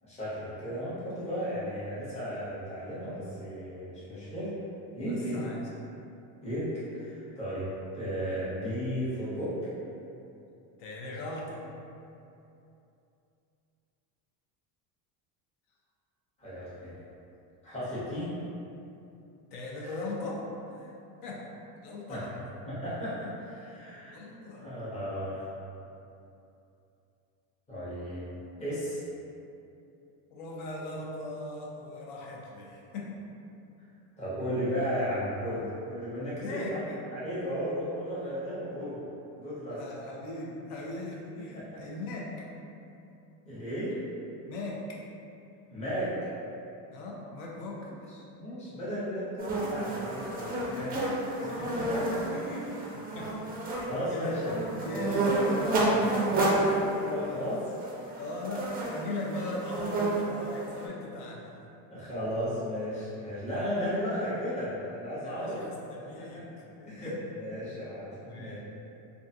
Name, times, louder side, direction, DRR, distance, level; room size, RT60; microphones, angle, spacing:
voice 1, 0.0-4.5 4.9-5.5 6.4-7.7 7.9-9.5 16.4-16.9 17.6-18.3 22.1-22.3 22.6-24.1 24.6-25.4 27.7-29.0 34.2-36.8 37.1-39.0 39.3-39.8 43.5-43.9 45.7-46.1 48.3-50.9 51.6-52.4 53.9-54.5 54.9-55.1 56.6-57.6 61.9-65.6 66.3-66.4 66.9-68.6, equal, 15° left, -11 dB, 0.8 m, -34 dB
voice 2, 5.1-5.6 10.8-11.6 19.5-21.0 21.2-21.4 21.8-22.3 23.9-24.7 30.3-33.2 36.4-37.0 39.7-42.5 44.5-45.0 46.9-47.9 50.4-51.6 52.3-53.3 54.1-56.1 56.3-56.5 58.2-61.5 65.2-67.2 68.2-68.6, left 2 dB, 75° left, -3 dB, 0.7 m, -39 dB
sound 1, 49.4-60.9, right 2 dB, 25° right, 0.3 m, -30 dB
2.4 x 2.3 x 2.6 m, 2.7 s
cardioid pair, 120°, 42 cm